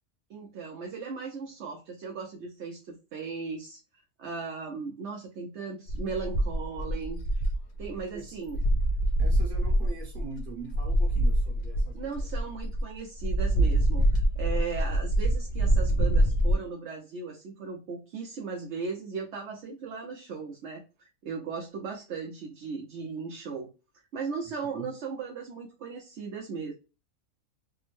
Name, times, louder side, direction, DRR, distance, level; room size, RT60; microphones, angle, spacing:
voice 1, 0.3-3.8 4.2-7.4 7.8-8.6 11.9-23.7 24.1-26.7, right 5 dB, 60° right, 0.8 m, -37 dB
sound 1, 5.9-8.2 8.5-12.8 13.2-16.5, right 1 dB, 60° left, 0.7 m, -25 dB
voice 2, 8.1-8.5 9.2-12.3 24.6-24.9, right 4 dB, 40° right, 1.2 m, -43 dB
3.4 x 2.0 x 3.1 m
omnidirectional pair, 1.5 m